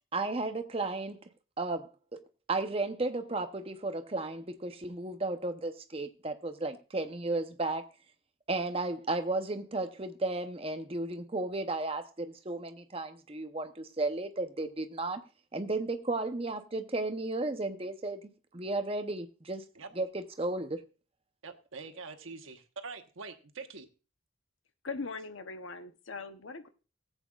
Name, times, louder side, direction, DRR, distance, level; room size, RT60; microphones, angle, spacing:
voice 1, 0.1-1.2 1.6-2.2 2.5-7.9 8.5-15.2 15.5-19.7 20.0-20.8, right 2 dB, 30° right, 0.7 m, -34 dB
voice 2, 21.4-23.9, right 4 dB, 85° right, 1.2 m, -44 dB
voice 3, 24.8-26.7, left 4 dB, 80° left, 0.9 m, -40 dB
18.5 x 8.1 x 2.4 m
head